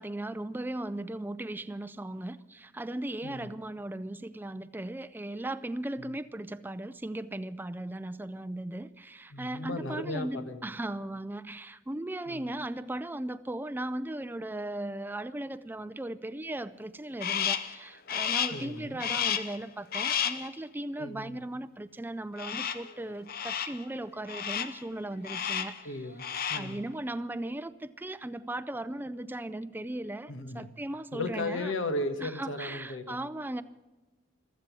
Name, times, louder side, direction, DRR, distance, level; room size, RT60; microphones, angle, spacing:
voice 1, 0.0-2.3 2.8-8.8 9.4-17.6 18.1-23.3 23.7-25.7 26.5-27.7 28.0-30.3 30.6-31.7 32.2-33.6, right 1 dB, 10° right, 12 dB, 0.4 m, -37 dB
voice 2, 3.2-3.6 6.0-6.2 9.3-10.7 12.3-12.5 18.5-19.0 21.0-21.4 25.8-26.8 30.3-30.7 31.1-33.3, left 2 dB, 85° left, 8 dB, 1.5 m, -36 dB
Crow, 17.2-17.8 18.1-18.7 19.0-19.6 19.9-20.5 22.4-22.9 23.3-23.8 24.3-24.8 25.2-25.8 26.1-26.8, left 8 dB, 50° left, 0.8 m, -32 dB
15.0 x 13.5 x 6.1 m, 1.1 s
head